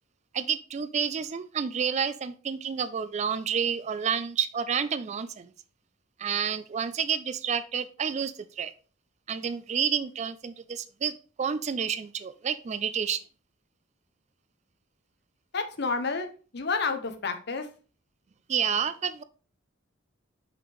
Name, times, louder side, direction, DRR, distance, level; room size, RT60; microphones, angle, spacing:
voice 1, 0.3-5.5 6.2-8.7 9.3-13.2 18.5-19.2, right 7 dB, 35° right, 0.3 m, -29 dB
voice 2, 15.5-17.7, left 4 dB, 55° left, 0.8 m, -30 dB
5.8 x 5.4 x 3.1 m
head